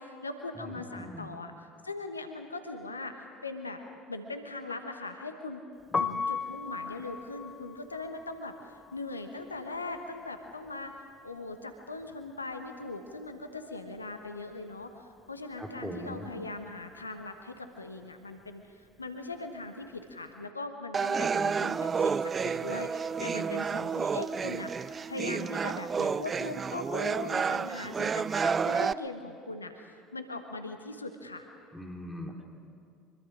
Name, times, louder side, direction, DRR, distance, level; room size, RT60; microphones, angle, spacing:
voice 1, 0.0-3.1 3.4-3.8 4.1-5.6 6.0-24.7 25.1-31.5, left 2 dB, 85° left, 6 dB, 1.2 m, -40 dB
voice 2, 0.5-1.3 15.6-16.3 31.7-32.4, equal, 5° right, 1 dB, 3.6 m, -41 dB
Piano, 5.8-11.7 12.0-13.6 13.9-20.3, left 5 dB, 20° left, 0.8 m, -39 dB
sound 1, 20.9-28.9, right 6 dB, 30° right, 0.5 m, -30 dB
25.0 x 23.0 x 5.0 m, 2.3 s
figure-of-eight pair, 65°, 0 cm